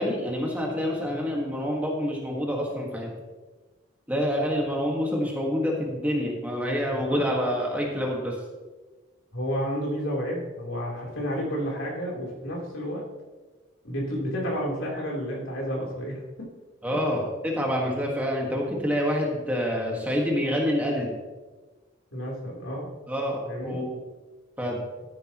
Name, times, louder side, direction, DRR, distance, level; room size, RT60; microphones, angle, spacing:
voice 1, 0.0-3.1 4.1-8.3 16.8-21.1 23.1-23.9 24.6-24.8, equal, 10° right, -1 dB, 1.6 m, -27 dB
voice 2, 6.9-7.2 9.3-13.0 13.8-16.5 22.1-22.9 23.4-23.8, equal, 80° left, -3 dB, 3.5 m, -31 dB
13.0 x 10.5 x 3.0 m, 1.3 s
head